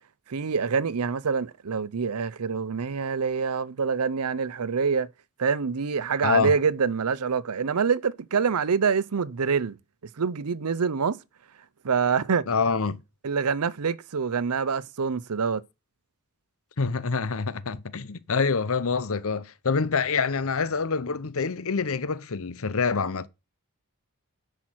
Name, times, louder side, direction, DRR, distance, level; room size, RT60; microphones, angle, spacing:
voice 1, 0.3-5.1 5.4-9.8 10.2-11.2 11.8-12.5 13.2-15.6, right 5 dB, 85° right, 0.6 m, -26 dB
voice 2, 6.2-6.5 12.5-13.0 16.8-23.3, left 5 dB, 65° left, 0.8 m, -26 dB
10.0 x 5.9 x 6.2 m
head